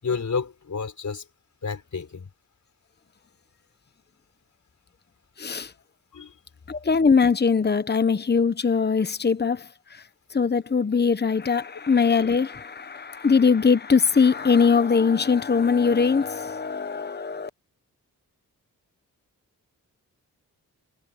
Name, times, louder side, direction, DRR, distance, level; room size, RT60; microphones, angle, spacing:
voice 1, 0.0-1.2 1.6-2.3 6.1-6.4 12.2-12.3, left 5 dB, 55° left, 5.4 m, -30 dB
voice 2, 5.4-5.7 6.7-9.6 10.3-17.5, left 5 dB, 30° left, 1.0 m, -21 dB
cardioid pair, 80°, 35 cm